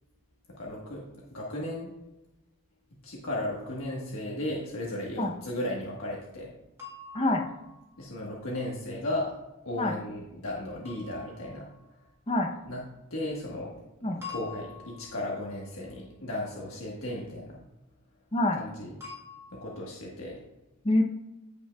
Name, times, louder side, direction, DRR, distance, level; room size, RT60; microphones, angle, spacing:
voice 1, 0.5-1.0 1.3-1.9 3.0-6.5 8.0-9.3 9.6-11.6 12.6-12.8 13.1-13.7 14.0-17.6 18.6-19.0 19.5-20.4, left 1 dB, 70° left, -3 dB, 1.3 m, -35 dB
voice 2, 5.2-5.3 7.1-7.4 9.8-9.9 12.3-12.5 14.0-14.2 18.3-18.6 20.8-21.0, left 1 dB, 25° left, 2 dB, 0.6 m, -25 dB
sound 1, 6.8-8.2 10.9-12.0 14.2-15.6 19.0-19.7, left 5 dB, 10° right, 2.0 m, -46 dB
15.0 x 5.3 x 2.3 m, 0.94 s
head